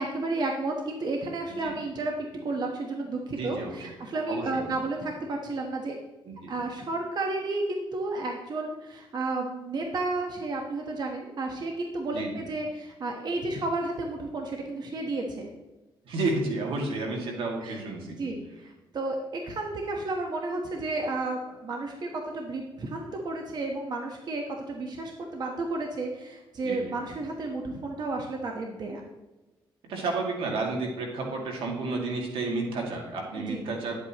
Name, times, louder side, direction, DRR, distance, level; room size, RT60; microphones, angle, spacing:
voice 1, 0.0-2.1 2.4-6.0 6.5-15.5 17.6-17.8 18.2-29.0 33.4-33.6, right 2 dB, 50° right, 1 dB, 1.2 m, -32 dB
voice 2, 3.3-3.8 4.3-4.7 6.3-6.5 12.1-12.4 16.0-18.3 26.6-27.0 29.9-34.1, right 3 dB, 85° right, 0 dB, 2.1 m, -31 dB
10.5 x 8.0 x 3.0 m, 1.1 s
cardioid pair, 100°, 9 cm